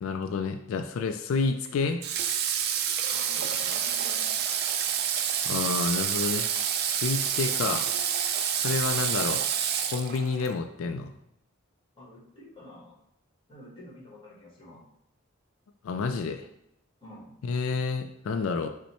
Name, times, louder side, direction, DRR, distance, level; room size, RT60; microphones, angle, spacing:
voice 1, 0.0-2.0 5.5-6.5 6.9-7.9 8.6-9.4 9.8-11.1 15.8-16.5 17.4-18.7, left 4 dB, 85° left, 6 dB, 0.3 m, -29 dB
Water / Water tap faucet, 2.0-10.5, right 8 dB, 50° right, 0.4 m, -28 dB
voice 2, 3.1-4.3 12.0-13.0 13.5-14.8 17.0-17.3, left 1 dB, 25° left, -5 dB, 1.5 m, -48 dB
5.4 x 2.1 x 4.4 m, 0.81 s
head